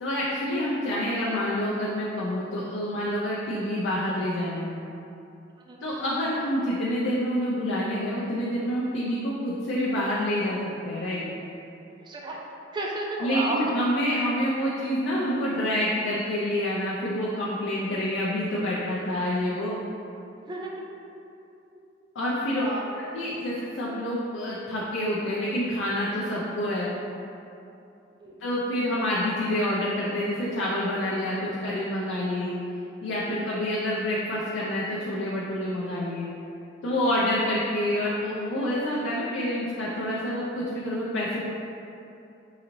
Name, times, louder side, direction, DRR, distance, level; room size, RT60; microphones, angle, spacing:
voice 1, 0.0-4.7 5.8-11.3 13.2-19.8 22.2-22.6 23.1-26.9 28.4-32.5 33.0-36.3 36.8-41.4, left 1 dB, 65° left, -6 dB, 0.4 m, -27 dB
voice 2, 12.0-13.7 20.5-20.8 22.5-23.0 28.2-28.4, right 2 dB, 25° right, -2 dB, 0.4 m, -33 dB
3.9 x 2.5 x 2.9 m, 2.7 s
head